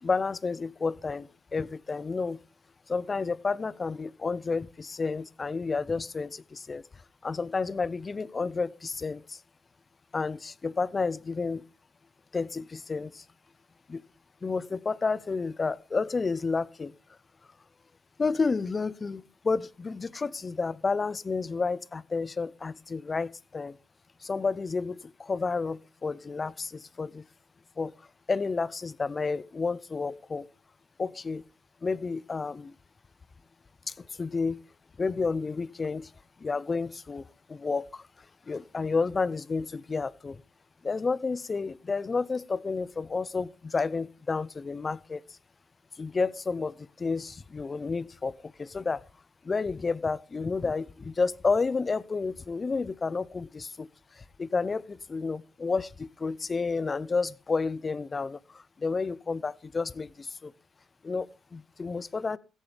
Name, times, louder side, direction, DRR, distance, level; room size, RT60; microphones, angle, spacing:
voice 1, 0.0-2.4 2.9-6.8 7.2-9.4 10.1-11.6 12.3-13.2 13.9-14.0 14.4-16.9 18.2-23.8 24.2-27.2 27.8-27.9 28.3-30.5 31.0-31.4 31.8-32.7 33.9-34.6 35.0-36.1 36.4-37.2 37.5-38.0 38.5-40.4 40.8-45.2 46.0-49.0 49.4-53.9 54.4-60.5 61.0-62.4, left 4 dB, 30° left, 0.7 m, -31 dB
16.5 x 14.5 x 3.4 m
cardioid pair, 90°, 0 cm